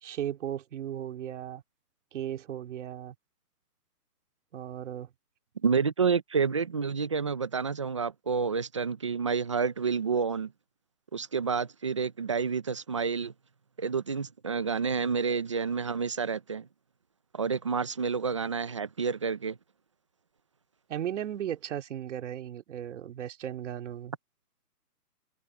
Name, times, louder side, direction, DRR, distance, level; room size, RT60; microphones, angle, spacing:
voice 1, 0.0-1.6 2.1-3.1 4.5-5.1 20.9-24.1, right 10 dB, 50° right, 2.5 m, -36 dB
voice 2, 5.6-10.5 11.1-13.3 13.8-16.7 17.3-19.6, right 5 dB, 20° right, 0.5 m, -29 dB
hypercardioid pair, 155°, 47 cm